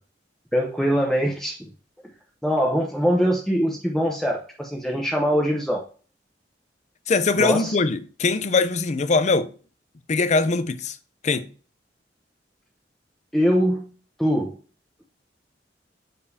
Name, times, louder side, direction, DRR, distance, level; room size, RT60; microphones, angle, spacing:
voice 1, 0.5-1.7 2.4-5.8 7.4-7.8 13.3-13.9 14.2-14.6, equal, ahead, 0.8 m, -22 dB
voice 2, 7.1-9.5 10.1-11.0 11.2-11.5, left 3 dB, 40° left, 0.5 m, -22 dB
6.7 x 5.2 x 2.7 m
head